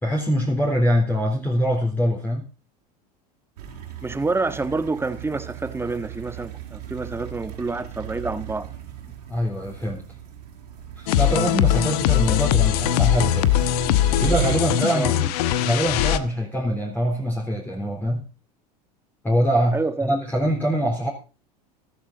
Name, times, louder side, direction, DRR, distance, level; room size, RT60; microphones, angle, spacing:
voice 1, 0.0-2.5 9.3-10.0 11.0-13.5 14.2-15.3 15.6-18.2 19.2-21.1, equal, 10° left, 3.8 m, -23 dB
sound 1, 3.6-14.6, right 7 dB, 85° right, 4.7 m, -35 dB
voice 2, 4.0-8.7 14.9-15.2 19.7-20.1, right 3 dB, 10° right, 1.4 m, -27 dB
sound 2, 11.1-16.2, left 13 dB, 75° left, 1.0 m, -21 dB
14.5 x 12.5 x 4.1 m
hypercardioid pair, 95°, 20 cm